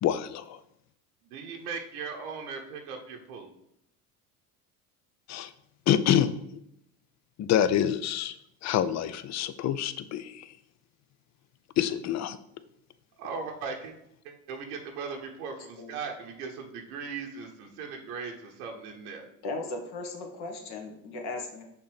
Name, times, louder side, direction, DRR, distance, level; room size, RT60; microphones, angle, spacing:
voice 1, 0.0-0.6 5.3-5.5 5.9-6.3 7.4-8.4 8.6-10.5 11.8-12.4, left 10 dB, 40° left, 14 dB, 0.5 m, -26 dB
voice 2, 1.2-3.5 13.2-13.9 14.2-19.3, right 5 dB, 80° right, 2 dB, 1.0 m, -38 dB
voice 3, 19.4-21.6, left 2 dB, 60° left, 3 dB, 1.5 m, -37 dB
6.4 x 2.9 x 5.0 m, 0.76 s
hypercardioid pair, 75°, 44 cm